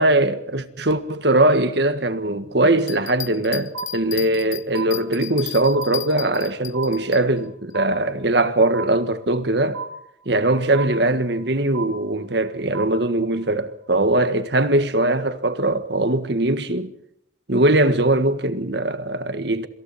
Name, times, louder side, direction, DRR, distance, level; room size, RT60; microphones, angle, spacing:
voice 1, 0.0-9.8 10.3-16.9 17.5-19.7, right 1 dB, 60° right, 1.7 m, -21 dB
sound 1, 2.8-7.2, left 14 dB, 90° left, 1.0 m, -34 dB
sound 2, 3.7-4.5 4.7-5.5 5.7-6.5 6.7-7.5 7.7-8.5 8.7-9.5 9.7-10.5 10.7-11.5 11.7-12.5 12.7-13.5, right 5 dB, 85° right, 3.0 m, -34 dB
27.5 x 26.0 x 4.3 m
head